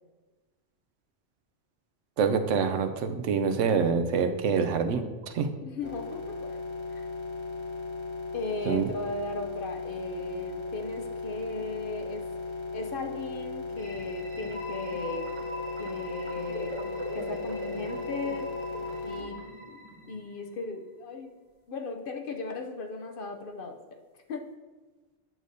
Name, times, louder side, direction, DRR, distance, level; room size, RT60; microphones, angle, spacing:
voice 1, 2.2-5.0 5.3-5.5 8.7-8.9, right 6 dB, 85° right, 8 dB, 0.9 m, -26 dB
voice 2, 5.6-6.6 6.9-7.0 8.3-12.2 12.7-15.2 15.8-18.5 19.0-19.4 20.1-21.3 21.7-24.0 24.3-24.4, left 3 dB, 55° left, 3 dB, 0.7 m, -37 dB
sound 1, 5.8-19.2, left 3 dB, 25° left, 0.9 m, -37 dB
sound 2, 13.7-20.5, equal, 30° right, 0.8 m, -40 dB
9.0 x 6.4 x 2.7 m, 1.3 s
omnidirectional pair, 1.2 m